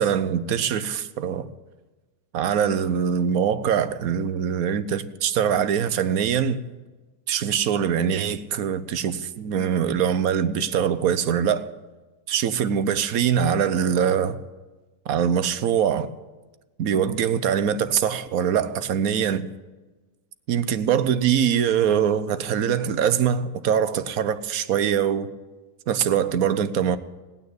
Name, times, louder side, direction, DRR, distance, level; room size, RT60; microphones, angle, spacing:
voice 1, 0.0-1.5 2.3-6.6 7.3-11.7 12.3-14.4 15.1-16.1 16.8-19.5 20.5-25.3 25.9-27.0, right 8 dB, 65° right, 1.2 m, -23 dB
18.5 x 9.4 x 8.1 m
omnidirectional pair, 1.7 m